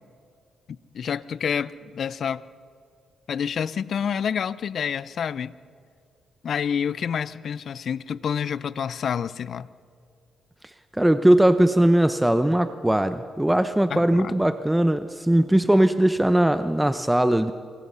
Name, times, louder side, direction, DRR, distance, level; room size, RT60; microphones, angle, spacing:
voice 1, 0.7-2.4 3.3-5.5 6.4-9.7 13.9-14.4, left 7 dB, 65° left, 0.6 m, -28 dB
voice 2, 11.0-17.5, right 1 dB, 10° right, 0.8 m, -20 dB
26.5 x 23.5 x 5.6 m
supercardioid pair, 65°, 0 cm